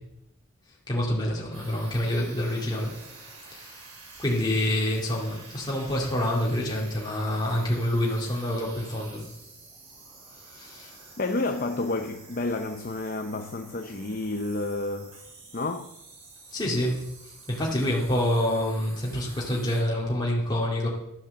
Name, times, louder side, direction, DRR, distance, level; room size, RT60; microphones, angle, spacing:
voice 1, 0.9-2.9 3.5-3.7 4.2-9.3 10.5-10.9 16.5-17.0 17.5-20.9, left 1 dB, 20° left, 2.2 m, -27 dB
sound 1, 1.5-19.8, right 3 dB, 85° right, 4.4 m, -48 dB
voice 2, 11.2-15.1 15.5-15.9, left 2 dB, 40° left, 0.6 m, -30 dB
12.5 x 7.4 x 7.0 m
head